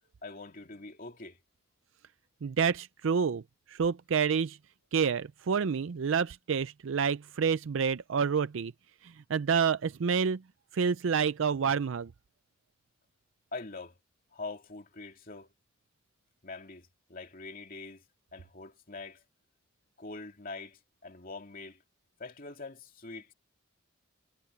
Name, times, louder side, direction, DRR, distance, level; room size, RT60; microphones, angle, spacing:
voice 1, 0.2-1.4 13.5-14.0 14.3-15.5 16.4-18.0 18.3-19.2 20.0-21.8 22.2-23.3, left 3 dB, 40° left, 2.8 m, -44 dB
voice 2, 2.4-3.4 3.7-4.6 4.9-8.7 9.0-10.4 10.7-12.1, right 6 dB, 70° right, 0.4 m, -28 dB
head